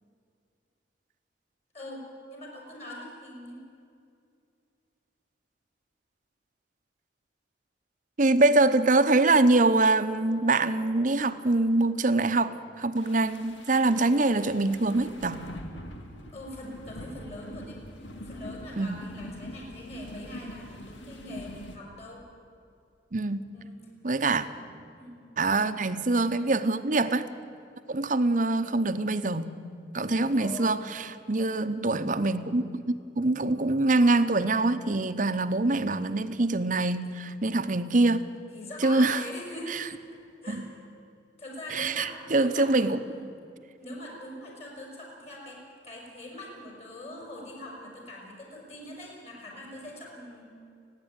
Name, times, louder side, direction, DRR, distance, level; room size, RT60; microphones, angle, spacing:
voice 1, 1.7-3.6 16.3-17.8 18.2-22.2 23.5-23.8 25.0-25.2 30.0-30.7 38.5-39.9 40.4-40.7 41.4-43.3 43.8-50.4, left 1 dB, 35° left, -2 dB, 6.0 m, -42 dB
voice 2, 8.2-15.4 18.8-19.0 23.1-23.4 24.0-24.4 25.4-27.3 27.9-29.5 29.9-38.2 38.8-39.2 39.7-39.9 40.5-40.7 41.7-43.0, right 2 dB, 45° right, 10 dB, 0.9 m, -24 dB
sound 1, 13.0-21.8, left 1 dB, 85° left, 2.0 m, -43 dB
30.0 x 10.5 x 9.0 m, 2.5 s
head